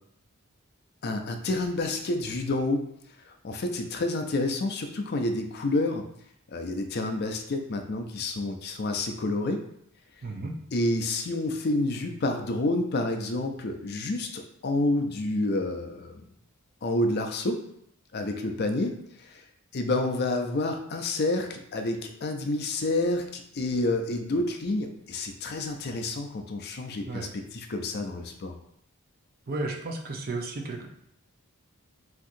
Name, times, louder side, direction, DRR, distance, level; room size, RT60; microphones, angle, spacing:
voice 1, 1.0-2.8 3.4-6.1 6.5-9.6 10.7-16.3 16.8-17.6 18.1-19.4 19.7-28.6, left 2 dB, 50° left, 5 dB, 0.5 m, -29 dB
voice 2, 10.2-10.5 27.1-27.3 29.5-30.9, right 2 dB, 45° right, 1 dB, 0.6 m, -33 dB
5.9 x 2.8 x 2.6 m, 0.72 s
head